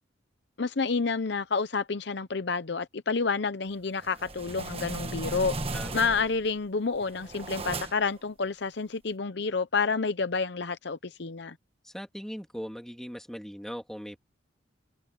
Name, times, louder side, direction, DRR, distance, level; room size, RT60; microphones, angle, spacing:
voice 1, 0.6-5.6 5.9-11.6, left 4 dB, 60° left, 0.7 m, -29 dB
sound 1, 4.0-6.5 6.9-8.2, right 2 dB, 30° right, 1.4 m, -36 dB
voice 2, 5.7-6.0 11.8-14.2, equal, ahead, 3.0 m, -39 dB
head